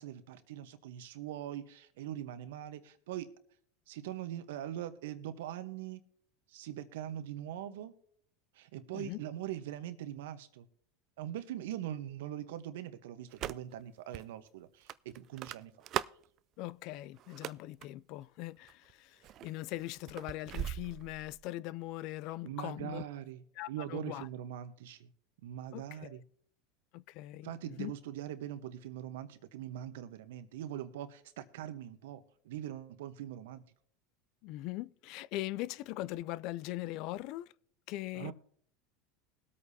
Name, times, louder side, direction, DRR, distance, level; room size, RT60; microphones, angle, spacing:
voice 1, 0.0-3.3 3.9-6.0 6.5-7.9 8.5-10.7 11.2-15.7 22.4-25.1 25.4-26.2 27.4-33.6 38.1-38.3, right 11 dB, 80° right, 1.0 m, -42 dB
sound 1, 13.3-13.8 14.1-14.2 14.9-16.2 17.2-17.9 18.6-18.9 19.2-21.5, right 12 dB, 45° right, 0.4 m, -39 dB
voice 2, 16.6-23.0 23.6-24.3 25.7-26.2 26.9-27.5 27.8-27.9 34.4-37.5 37.9-38.3, left 16 dB, 60° left, 0.3 m, -41 dB
21.0 x 8.5 x 2.8 m
hypercardioid pair, 100°, 0 cm